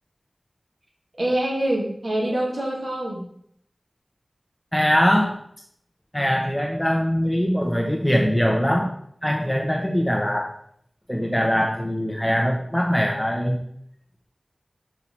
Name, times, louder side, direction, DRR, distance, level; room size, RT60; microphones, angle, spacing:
voice 1, 1.1-3.2, right 1 dB, 70° right, -3 dB, 2.9 m, -25 dB
voice 2, 4.7-5.4 6.1-8.9 9.2-10.5 11.1-13.6, equal, 5° left, 0 dB, 1.0 m, -22 dB
5.7 x 4.8 x 5.9 m, 0.67 s
wide cardioid pair, 60°, 0 cm